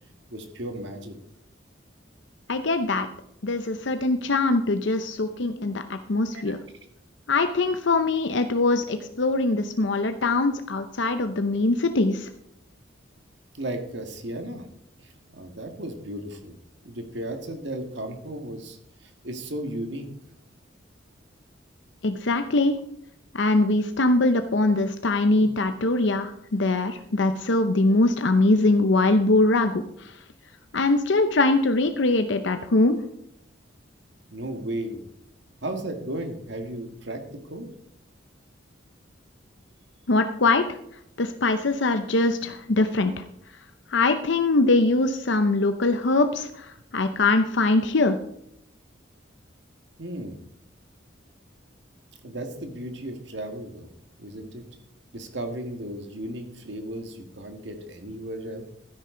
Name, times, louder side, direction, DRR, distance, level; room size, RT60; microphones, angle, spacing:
voice 1, 0.3-1.2 6.3-6.6 13.6-14.7 15.0-16.6 16.8-20.1 34.3-35.0 35.6-37.7 50.0-50.4 52.2-53.9 54.2-54.6 55.1-58.7, right 1 dB, 65° right, 5 dB, 1.9 m, -35 dB
voice 2, 2.5-3.1 3.4-6.6 7.3-12.3 22.0-22.8 23.3-30.1 30.7-33.0 40.1-40.7 41.2-43.1 43.9-46.7 46.9-48.2, left 2 dB, 70° left, 8 dB, 0.7 m, -22 dB
12.5 x 10.0 x 3.8 m, 0.72 s
head